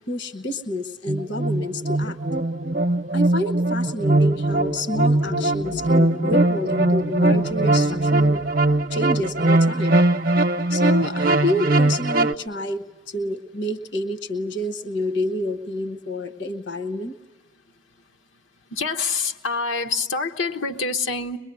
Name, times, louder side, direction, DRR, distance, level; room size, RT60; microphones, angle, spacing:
voice 1, 0.1-2.2 3.1-8.4 8.9-10.0 10.7-17.1, left 1 dB, 65° left, 11 dB, 1.1 m, -28 dB
sound 1, 1.1-12.3, right 2 dB, 50° right, 0.7 m, -20 dB
sound 2, 1.8-10.7 11.7-11.8 12.2-12.7, left 5 dB, 40° left, 0.7 m, -37 dB
voice 2, 18.7-21.4, left 4 dB, 85° left, 5 dB, 1.2 m, -26 dB
23.0 x 22.5 x 9.5 m, 1.1 s
head